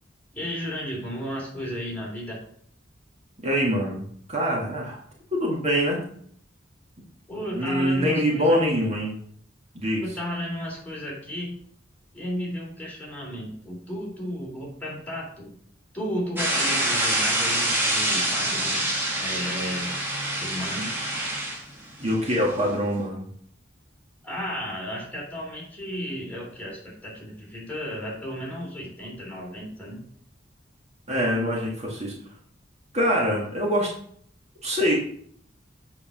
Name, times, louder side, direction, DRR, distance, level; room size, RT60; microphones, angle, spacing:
voice 1, 0.3-2.4 7.3-8.9 10.0-11.6 12.1-15.5 15.9-18.8 19.2-20.0 20.4-20.9 24.2-30.0, equal, 10° left, -4 dB, 3.1 m, -34 dB
voice 2, 3.4-5.0 5.3-6.0 7.5-9.2 9.7-10.0 22.0-23.3 31.1-32.1 32.9-33.9 34.6-35.0, equal, 35° right, -3 dB, 2.0 m, -24 dB
sound 1, 16.4-22.7, right 1 dB, 10° right, 2.5 m, -26 dB
8.3 x 4.9 x 6.1 m, 0.62 s
head